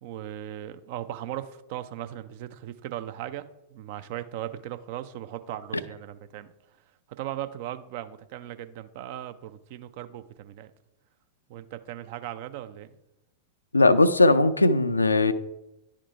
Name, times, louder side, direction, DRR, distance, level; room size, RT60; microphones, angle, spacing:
voice 1, 0.0-6.5 7.2-10.7 11.5-12.9, right 12 dB, 50° right, 11 dB, 0.5 m, -38 dB
voice 2, 13.7-15.3, left 2 dB, 80° left, 13 dB, 0.4 m, -19 dB
10.5 x 3.7 x 4.6 m, 0.91 s
figure-of-eight pair, 90°, 0 cm